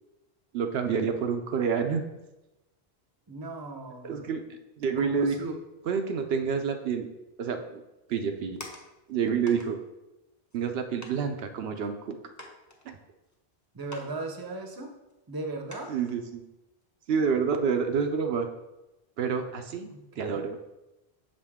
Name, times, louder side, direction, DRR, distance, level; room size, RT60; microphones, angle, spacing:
voice 1, 0.5-2.0 4.0-4.4 4.8-5.5 5.9-7.1 7.4-7.8 8.1-8.6 9.1-9.8 10.5-12.2 12.9-13.0 15.9-16.4 17.1-18.5 19.2-19.9 20.2-20.6, right 6 dB, 75° right, 6 dB, 0.8 m, -28 dB
voice 2, 3.3-4.6 5.0-5.6 13.7-14.9 15.3-15.9 19.9-20.4, right 2 dB, 25° right, 3 dB, 0.7 m, -38 dB
sound 1, 8.1-9.1 9.5-9.7 10.5-10.6 11.0-11.3 11.8-11.9 12.4-13.4 13.8-14.2 14.4-14.5 15.1-15.2 15.7-16.2 16.6-16.8, left 1 dB, 20° left, 0.7 m, -46 dB
6.5 x 5.1 x 3.5 m, 0.98 s
omnidirectional pair, 1.1 m